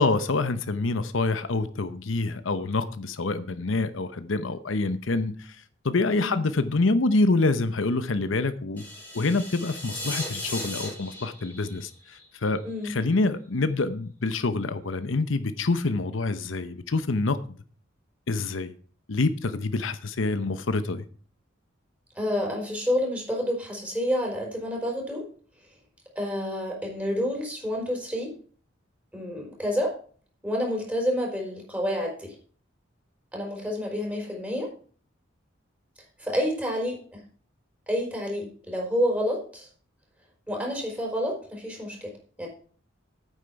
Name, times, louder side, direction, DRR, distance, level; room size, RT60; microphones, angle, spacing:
voice 1, 0.0-8.8 9.1-17.4 18.3-18.7 19.1-21.1, left 3 dB, 80° left, 12 dB, 0.8 m, -26 dB
sound 1, 8.8-12.8, left 1 dB, 10° left, 3.1 m, -37 dB
voice 2, 22.1-25.2 26.1-28.3 29.1-30.0 30.4-32.4 33.3-34.7 36.2-37.2 37.9-39.7 40.5-42.1 42.4-42.5, equal, 10° right, 0 dB, 4.4 m, -29 dB
9.3 x 8.3 x 5.7 m, 0.43 s
head